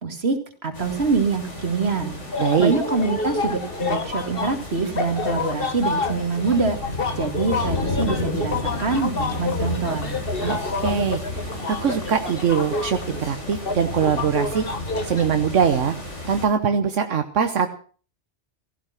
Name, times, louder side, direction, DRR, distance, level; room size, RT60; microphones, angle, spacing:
voice 1, 0.0-2.1 2.6-6.8 7.2-10.2, right 4 dB, 60° right, 7 dB, 2.5 m, -25 dB
sound 1, 0.7-16.5, left 2 dB, 75° left, 4.9 m, -32 dB
sound 2, 2.3-15.3, left 4 dB, 50° left, 1.8 m, -29 dB
voice 2, 2.4-2.7 10.4-14.6 15.0-15.9 16.3-17.7, right 7 dB, 85° right, 7 dB, 1.4 m, -22 dB
16.5 x 14.5 x 5.9 m, 0.42 s
omnidirectional pair, 1.2 m